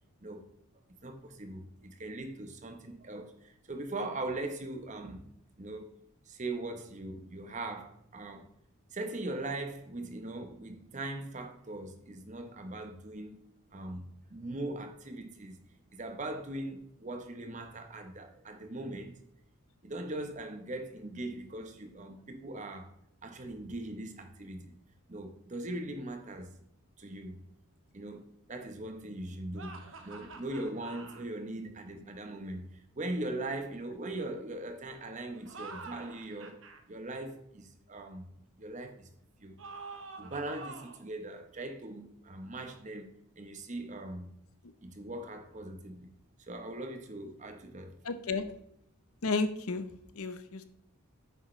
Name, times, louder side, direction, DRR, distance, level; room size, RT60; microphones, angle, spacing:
voice 1, 1.0-5.3 5.6-5.9 6.3-8.5 8.9-13.4 13.7-15.6 15.9-19.2 19.8-22.9 23.2-24.8 25.1-26.5 27.0-27.4 27.9-32.7 33.0-36.6 36.9-38.3 38.6-39.1 39.4-39.6 40.2-44.3 44.8-46.1 46.5-47.9, right 2 dB, 35° right, 0.9 m, -40 dB
sound 1, 29.5-31.2 35.4-36.8 39.6-41.1, right 4 dB, 60° right, 1.0 m, -47 dB
voice 2, 48.0-48.4 49.2-50.6, left 3 dB, 80° left, 0.8 m, -33 dB
9.0 x 6.4 x 3.2 m
head